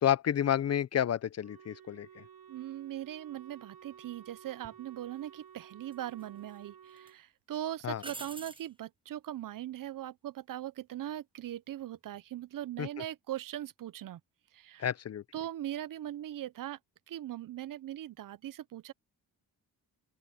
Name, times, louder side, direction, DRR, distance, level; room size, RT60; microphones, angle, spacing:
voice 1, 0.0-2.2 7.8-8.0 12.8-12.9 14.8-15.2, left 10 dB, 45° left, 0.5 m, -30 dB
Wind instrument woodwind instrument, 1.4-7.2, right 8 dB, 80° right, 6.6 m, -54 dB
voice 2, 2.5-14.2 14.5-14.9 15.3-16.8 17.1-18.9, right 12 dB, 60° right, 0.5 m, -40 dB
sound 1, 4.6-4.8 5.9-6.6 7.0-7.1 8.0-8.7 11.8-12.2, right 3 dB, 15° right, 0.8 m, -46 dB
open air
wide cardioid pair, 120°, 38 cm